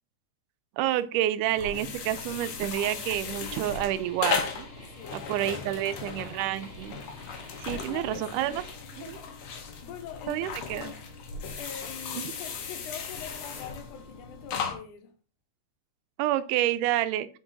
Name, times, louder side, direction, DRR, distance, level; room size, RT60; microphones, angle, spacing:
voice 1, 0.8-4.7 5.1-7.0 7.6-8.6 9.1-9.2 10.3-11.0 12.1-12.2 16.2-17.3, right 13 dB, 90° right, 2.1 m, -29 dB
sound 1, 1.5-14.7, left 6 dB, 65° left, 2.0 m, -36 dB
sound 2, 3.4-8.7, left 2 dB, 20° left, 2.1 m, -49 dB
voice 2, 4.9-6.2 7.7-9.2 9.8-11.0 11.6-15.1, left 8 dB, 80° left, 2.3 m, -44 dB
6.0 x 5.0 x 4.0 m
omnidirectional pair, 3.6 m